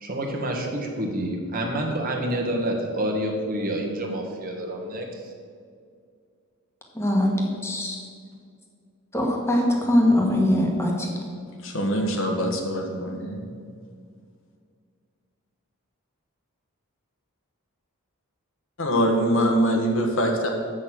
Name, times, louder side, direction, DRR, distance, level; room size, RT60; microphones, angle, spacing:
voice 1, 0.0-5.3, right 1 dB, 40° right, 1 dB, 1.4 m, -28 dB
voice 2, 6.9-8.0 9.1-11.1, left 1 dB, 10° left, 0 dB, 1.4 m, -22 dB
voice 3, 11.6-13.5 18.8-20.5, equal, 60° left, 1 dB, 1.4 m, -23 dB
8.2 x 6.4 x 6.0 m, 2.2 s
head